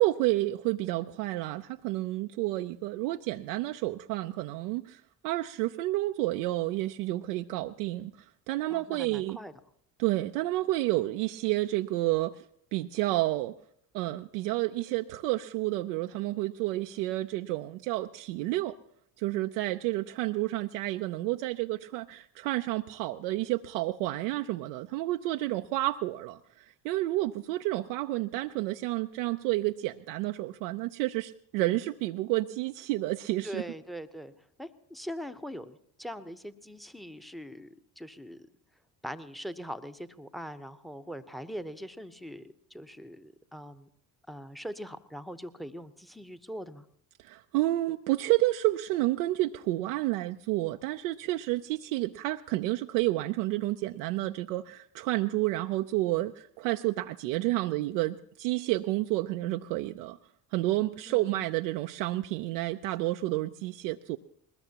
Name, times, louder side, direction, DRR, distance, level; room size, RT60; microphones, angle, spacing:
voice 1, 0.0-9.4 10.0-12.4 12.7-13.5 13.9-18.8 19.2-33.6 47.2-60.2 60.5-64.2, right 17 dB, 80° right, 6 dB, 0.5 m, -30 dB
voice 2, 8.7-9.5 33.4-34.3 34.6-38.5 39.0-43.9 44.3-46.8 61.1-61.3, equal, ahead, 13 dB, 0.8 m, -42 dB
20.5 x 20.0 x 2.9 m, 0.69 s
hypercardioid pair, 65°, 46 cm